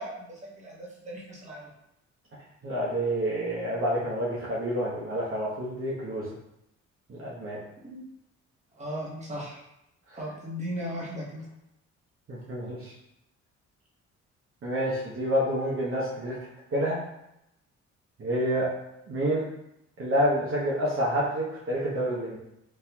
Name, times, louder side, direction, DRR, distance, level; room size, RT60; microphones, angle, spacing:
voice 1, 0.0-1.7 7.8-8.0 8.7-9.6 10.1-11.5, equal, 25° right, -4 dB, 1.1 m, -37 dB
voice 2, 2.6-6.2 7.1-7.6 10.1-10.2 12.3-12.9 14.6-16.4 16.7-17.0 18.2-18.7 19.1-19.4 20.0-22.4, equal, 45° right, -6 dB, 0.9 m, -28 dB
4.2 x 2.7 x 2.3 m, 0.83 s
cardioid pair, 90°, 30 cm